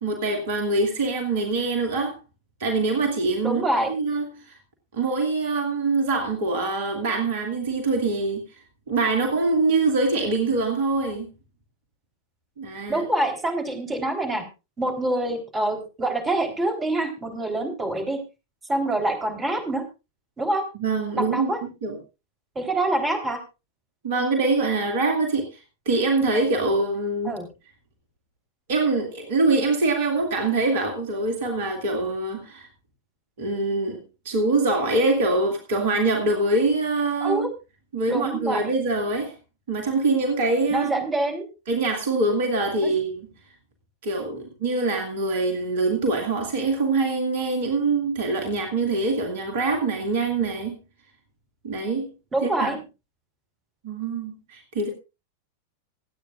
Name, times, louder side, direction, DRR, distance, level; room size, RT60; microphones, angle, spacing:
voice 1, 0.0-2.2 2.6-4.6 4.9-8.4 8.9-11.3 12.6-13.0 20.8-21.5 21.8-22.0 24.0-25.6 25.9-27.3 28.7-32.7 33.4-34.0 34.2-37.5 37.9-39.3 39.7-41.0 41.7-43.3 44.0-50.8 51.6-52.1 52.4-52.7 53.8-54.9, right 3 dB, 55° right, 4 dB, 2.2 m, -24 dB
voice 2, 3.4-3.9 12.9-14.4 14.8-18.2 18.7-19.8 20.4-20.7 21.1-21.6 22.6-23.4 27.2-27.5 37.2-37.5 38.1-38.6 40.7-41.5 42.8-42.9 52.3-52.8, right 1 dB, 15° right, 3 dB, 3.9 m, -25 dB
26.5 x 8.9 x 2.5 m, 0.28 s
figure-of-eight pair, 90°, 0 cm